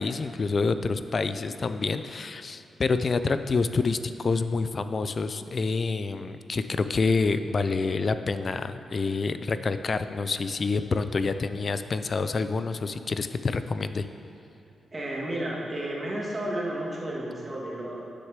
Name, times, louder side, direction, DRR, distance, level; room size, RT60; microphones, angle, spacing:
voice 1, 0.0-14.1, left 4 dB, 45° left, 11 dB, 0.4 m, -27 dB
voice 2, 14.9-18.0, right 1 dB, 30° right, -4 dB, 2.1 m, -32 dB
7.7 x 6.5 x 6.6 m, 2.8 s
cardioid pair, 95°, 0 cm